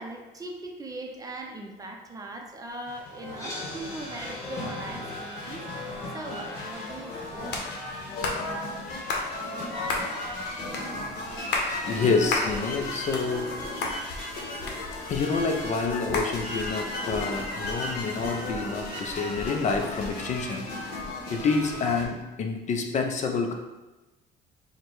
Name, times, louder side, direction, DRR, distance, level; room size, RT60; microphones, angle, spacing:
voice 1, 0.0-5.7 6.1-7.5, right 2 dB, 20° right, 1 dB, 0.5 m, -40 dB
sound 1, 2.7-22.0, left 2 dB, 60° left, 1.2 m, -35 dB
sound 2, 3.3-13.4, left 1 dB, 15° left, 1.3 m, -47 dB
sound 3, 7.5-7.7 8.2-8.4 9.1-9.3 9.9-10.1 10.7-10.9 11.4-11.7 12.3-12.5 12.9-13.6 13.8-14.0 14.7-15.2 16.1-16.3, left 3 dB, 80° left, 0.8 m, -29 dB
voice 2, 11.7-14.0 14.6-21.0 21.3-23.5, left 4 dB, 45° left, 3 dB, 0.5 m, -28 dB
4.7 x 2.1 x 4.6 m, 1.1 s
cardioid pair, 130°, 18 cm